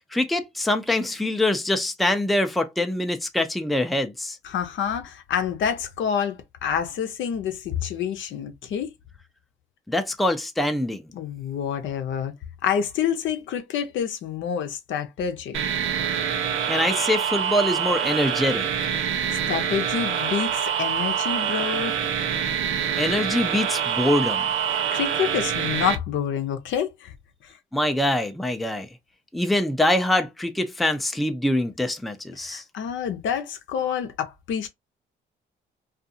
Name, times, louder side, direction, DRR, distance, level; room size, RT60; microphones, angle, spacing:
voice 1, 0.1-4.4 9.9-11.0 16.7-18.7 23.0-24.5 27.7-28.9 29.3-32.6, left 1 dB, ahead, 0.4 m, -24 dB
voice 2, 4.4-8.9 11.1-12.3 12.6-15.6 19.5-20.5 20.8-21.9 24.9-27.1 32.4-34.7, left 8 dB, 75° left, 0.7 m, -27 dB
sound 1, 15.5-26.0, right 8 dB, 90° right, 0.6 m, -25 dB
2.5 x 2.4 x 2.6 m
cardioid pair, 90°, 20 cm